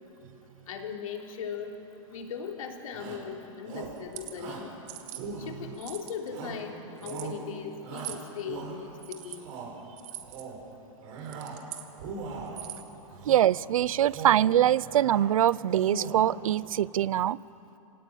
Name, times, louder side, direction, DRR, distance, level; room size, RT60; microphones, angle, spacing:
voice 1, 0.7-1.8 2.1-4.7 5.5-9.4, left 6 dB, 80° left, 2 dB, 3.3 m, -38 dB
Shout, 2.9-3.3 3.7-4.0 4.3-4.7 5.2-5.8 6.3-6.7 7.0-7.4 7.8-8.9 9.3-9.7 10.2-10.6 11.0-11.6 11.9-12.6 13.2-13.5 14.0-14.5 14.8-15.3 15.7-16.4, right 4 dB, 60° right, 7.0 m, -40 dB
sound 1, 4.0-4.3 4.9-5.2 5.7-6.3 7.0-7.3 8.0-8.3 9.0-9.4 10.0-10.4 11.2-11.9 12.5-12.9, right 14 dB, 45° right, 1.9 m, -42 dB
voice 2, 13.3-17.4, right 11 dB, 90° right, 22 dB, 0.5 m, -23 dB
26.0 x 17.5 x 9.1 m, 2.9 s
hypercardioid pair, 135°, 17 cm